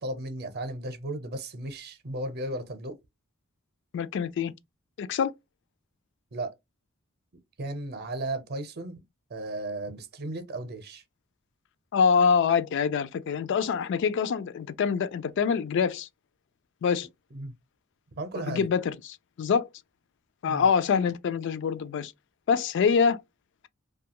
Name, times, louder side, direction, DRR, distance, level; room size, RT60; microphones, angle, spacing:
voice 1, 0.0-3.0 6.3-6.5 7.6-9.0 9.3-11.0 17.3-17.6 18.1-18.7 20.5-20.7, right 1 dB, 50° right, 0.7 m, -35 dB
voice 2, 3.9-4.5 5.0-5.3 11.9-16.1 16.8-17.1 18.4-19.7 20.4-22.1 22.5-23.2, left 6 dB, 60° left, 0.3 m, -25 dB
2.8 x 2.3 x 2.8 m
head